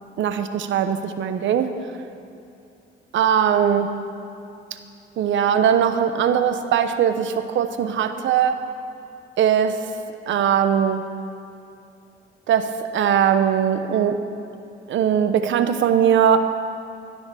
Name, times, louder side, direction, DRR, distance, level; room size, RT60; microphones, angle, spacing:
voice 1, 0.2-1.7 3.1-3.9 5.2-8.6 9.4-9.8 10.3-11.0 12.5-14.2 14.9-16.4, right 8 dB, 75° right, 9 dB, 1.0 m, -20 dB
14.0 x 10.0 x 6.9 m, 2.7 s
cardioid pair, 90°, 20 cm